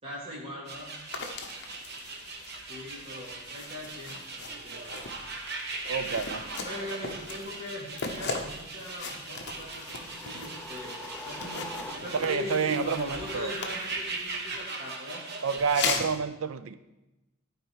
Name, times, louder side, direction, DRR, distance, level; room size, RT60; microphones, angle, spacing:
voice 1, 0.0-1.0 2.7-4.8 6.6-15.2, left 1 dB, 30° right, -5 dB, 2.5 m, -40 dB
sound 1, 0.7-15.8, right 3 dB, 50° right, 1.1 m, -40 dB
sound 2, 1.1-14.6 15.6-16.2, left 4 dB, 55° left, 0.9 m, -39 dB
voice 2, 5.9-6.5 12.1-13.5 15.4-16.8, right 6 dB, 75° right, 13 dB, 0.5 m, -29 dB
sound 3, 9.3-12.5, left 1 dB, 5° left, 0.7 m, -44 dB
11.5 x 4.6 x 4.7 m, 0.98 s
head